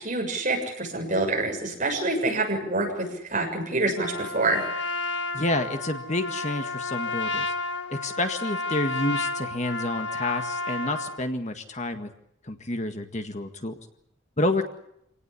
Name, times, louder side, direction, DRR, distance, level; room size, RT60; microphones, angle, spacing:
voice 1, 0.0-4.6, right 2 dB, 35° right, 2 dB, 6.9 m, -26 dB
Trumpet, 4.0-11.2, left 3 dB, 55° left, 2.0 m, -31 dB
voice 2, 5.3-7.5 7.9-12.1 12.5-13.7 14.4-14.6, left 1 dB, 35° left, 7 dB, 1.8 m, -29 dB
27.0 x 18.5 x 8.5 m, 0.77 s
head